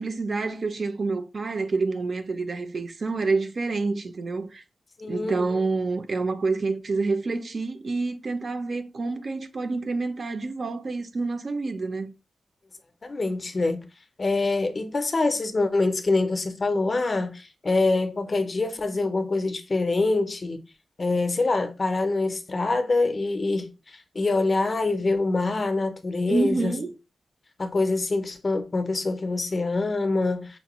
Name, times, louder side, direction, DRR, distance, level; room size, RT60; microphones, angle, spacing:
voice 1, 0.0-4.6 5.1-12.1 26.3-26.9, right 3 dB, 45° right, 0.4 m, -28 dB
voice 2, 5.0-5.5 13.0-13.8 14.2-20.6 21.0-26.7 27.6-30.6, left 3 dB, 35° left, 0.5 m, -25 dB
5.1 x 2.1 x 2.9 m
wide cardioid pair, 175°, 0 cm